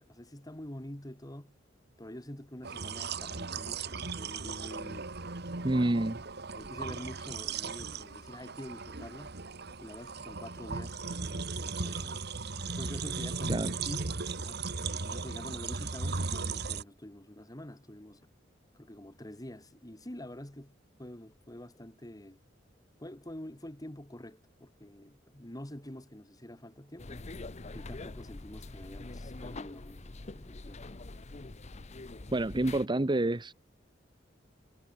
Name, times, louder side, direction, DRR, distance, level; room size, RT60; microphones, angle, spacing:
voice 1, 0.0-1.5 2.0-5.1 6.5-9.4 9.8-12.3 12.8-18.2 18.7-22.4 23.0-27.3 27.7-31.0, left 1 dB, 20° left, 2.1 m, -46 dB
sound 1, 2.6-16.8, right 4 dB, 60° right, 1.7 m, -37 dB
voice 2, 5.6-6.2 13.5-13.7 32.3-33.5, right 1 dB, 25° right, 0.8 m, -28 dB
sound 2, 27.0-32.9, left 2 dB, 35° left, 0.9 m, -44 dB
head